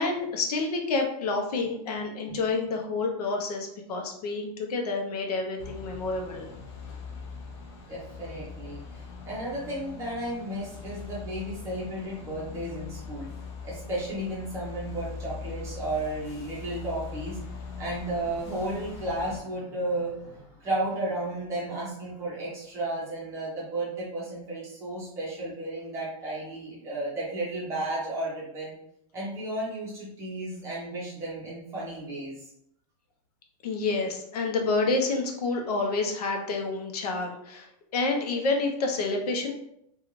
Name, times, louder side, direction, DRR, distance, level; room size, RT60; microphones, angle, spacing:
voice 1, 0.0-6.5 33.6-39.5, left 3 dB, 90° left, 2 dB, 0.7 m, -29 dB
sound 1, 5.6-19.4, left 5 dB, 45° left, 0.5 m, -41 dB
voice 2, 7.9-13.3 13.6-17.4 17.8-28.7 29.1-32.4, right 1 dB, 15° right, -6 dB, 0.7 m, -33 dB
2.5 x 2.3 x 3.0 m, 0.76 s
supercardioid pair, 175°, 19 cm